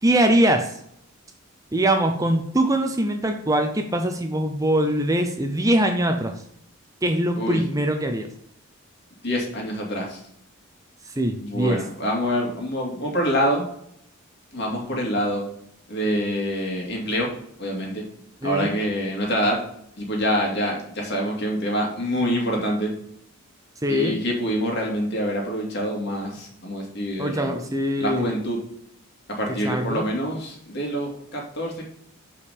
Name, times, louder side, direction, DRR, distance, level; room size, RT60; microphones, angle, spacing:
voice 1, 0.0-0.8 1.7-6.3 7.0-8.3 11.2-11.8 18.4-18.7 23.8-24.2 27.2-28.2 29.6-30.0, right 1 dB, 15° right, 5 dB, 0.6 m, -22 dB
voice 2, 9.2-10.2 11.4-13.7 14.5-15.4 15.9-17.3 17.6-18.0 18.4-19.6 20.0-22.9 23.9-27.5 28.0-28.6 29.3-31.9, equal, 50° left, -1 dB, 2.4 m, -26 dB
6.6 x 5.5 x 5.3 m, 0.71 s
head